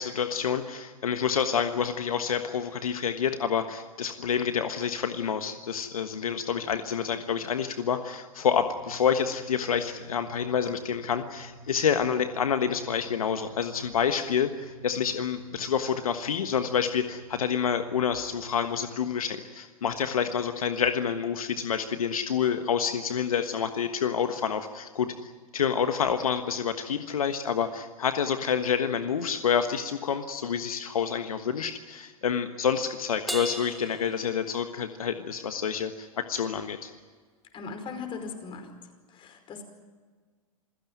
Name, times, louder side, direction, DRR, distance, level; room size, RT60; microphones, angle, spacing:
voice 1, 0.0-36.9, left 7 dB, 80° left, 8 dB, 1.4 m, -28 dB
sound 1, 8.6-18.9, right 2 dB, 20° right, 2.4 m, -50 dB
Crash cymbal, 33.3-35.0, right 1 dB, ahead, 1.3 m, -37 dB
voice 2, 37.5-38.7 39.1-39.6, left 5 dB, 30° left, 7 dB, 5.0 m, -38 dB
28.0 x 16.0 x 9.3 m, 1.5 s
hypercardioid pair, 110°, 18 cm